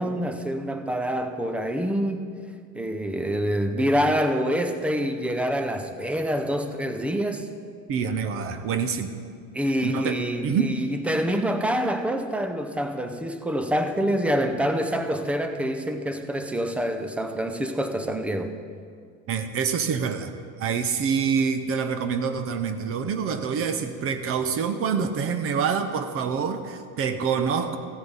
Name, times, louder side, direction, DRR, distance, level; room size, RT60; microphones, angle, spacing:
voice 1, 0.0-2.3 2.7-7.5 9.5-18.5 25.0-25.1, equal, 5° right, 7 dB, 0.5 m, -26 dB
voice 2, 7.9-9.1 9.8-10.2 10.4-10.7 19.3-20.3 20.6-27.8, right 6 dB, 35° right, 9 dB, 0.7 m, -26 dB
15.0 x 7.7 x 5.5 m, 2.2 s
supercardioid pair, 135°, 40 cm